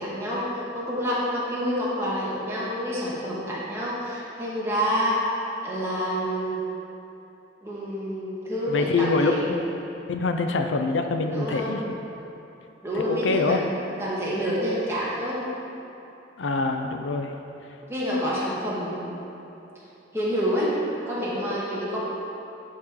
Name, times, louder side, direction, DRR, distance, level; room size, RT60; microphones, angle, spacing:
voice 1, 0.0-5.2 5.6-6.6 7.6-9.4 11.3-11.7 12.8-13.7 14.0-15.4 17.9-19.5 20.1-20.7 21.0-22.0, equal, 15° right, -7 dB, 1.5 m, -28 dB
voice 2, 8.7-9.6 10.1-11.8 13.0-13.6 16.4-17.3, left 3 dB, 80° left, 5 dB, 0.5 m, -25 dB
11.0 x 4.7 x 3.7 m, 2.8 s
head